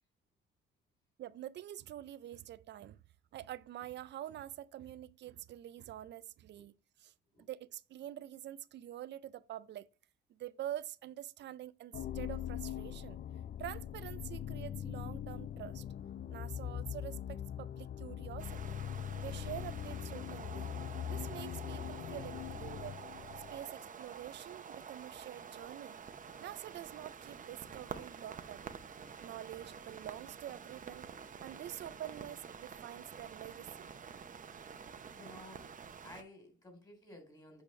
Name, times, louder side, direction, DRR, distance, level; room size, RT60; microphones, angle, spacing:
voice 1, 1.2-3.0 3.3-9.9 10.3-13.2 13.6-15.9 16.3-18.8 19.2-20.7 21.1-23.0 23.5-26.0 26.4-28.7 29.2-31.1 31.4-33.9, right 12 dB, 60° right, 0.4 m, -46 dB
sound 1, 11.9-23.8, left 10 dB, 50° left, 0.4 m, -42 dB
sound 2, 18.4-36.2, right 6 dB, 40° right, 0.8 m, -49 dB
voice 2, 34.7-35.7 36.0-37.6, left 1 dB, 20° left, 3.5 m, -55 dB
8.3 x 4.9 x 3.2 m
cardioid pair, 90°, 20 cm